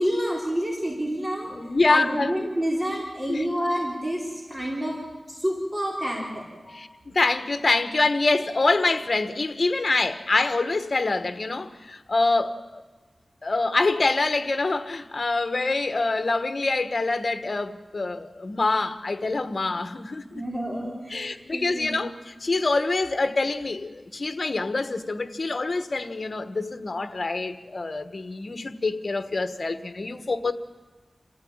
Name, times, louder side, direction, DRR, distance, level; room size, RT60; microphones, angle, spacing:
voice 1, 0.0-1.5 1.9-5.0 5.3-6.8 20.3-21.9, equal, 25° right, 4.2 m, -28 dB
voice 2, 1.5-2.3 3.3-3.5 6.7-12.8 13.4-20.4 21.1-30.5, left 3 dB, 55° left, 1.3 m, -25 dB
27.5 x 15.0 x 8.8 m
wide cardioid pair, 80°, 0 cm